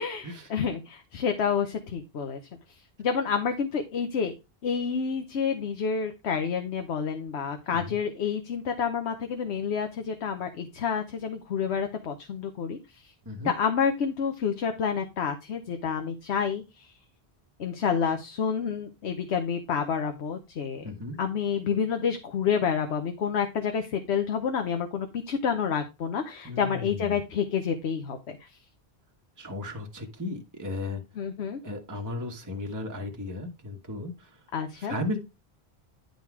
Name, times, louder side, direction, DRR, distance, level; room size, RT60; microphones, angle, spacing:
voice 1, 0.0-2.4 3.0-4.3 4.6-13.1 13.4-16.9 17.6-20.8 21.2-28.5 31.2-31.6 34.5-34.9, left 6 dB, 90° left, 6 dB, 1.1 m, -29 dB
voice 2, 20.8-21.2 26.4-27.1 29.4-31.0 31.6-34.4 34.8-35.2, left 2 dB, 20° right, 1 dB, 1.1 m, -35 dB
10.5 x 4.0 x 4.6 m, 0.26 s
omnidirectional pair, 1.1 m